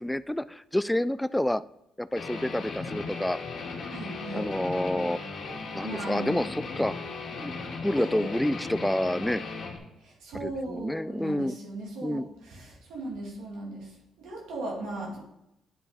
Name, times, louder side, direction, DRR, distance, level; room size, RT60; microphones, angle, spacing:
voice 1, 0.0-1.6 2.0-3.4 4.3-5.2 5.7-6.9 7.3-7.5 7.8-9.4 10.4-11.6 12.0-12.3, left 1 dB, 5° left, 16 dB, 0.3 m, -28 dB
Guitar, 2.2-9.8, left 4 dB, 65° left, 2.0 m, -37 dB
voice 2, 3.9-4.5 5.8-6.4 7.9-8.3 10.0-13.9 14.2-15.2, right 2 dB, 85° right, -2 dB, 2.6 m, -37 dB
9.9 x 5.6 x 4.1 m, 0.85 s
cardioid pair, 90°, 0 cm